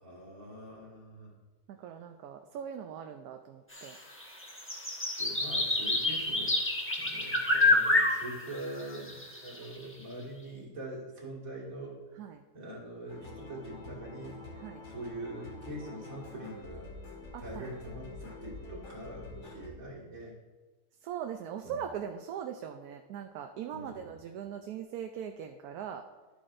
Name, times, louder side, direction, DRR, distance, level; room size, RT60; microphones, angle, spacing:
voice 1, 0.0-1.3 5.2-6.5 7.0-12.0 12.5-14.4 14.9-16.9 17.4-20.3 21.6-21.8 23.7-24.1, right 1 dB, 60° right, -4 dB, 2.5 m, -43 dB
voice 2, 1.7-4.0 5.4-5.5 12.2-12.4 14.6-14.8 17.3-17.7 21.0-26.0, right 8 dB, 75° right, 5 dB, 1.1 m, -40 dB
sound 1, 3.7-3.9 4.2-9.7, left 2 dB, 10° left, 1.0 m, -28 dB
sound 2, 13.1-19.7, left 2 dB, 85° left, 2.3 m, -47 dB
11.5 x 8.5 x 2.5 m, 1.2 s
omnidirectional pair, 1.7 m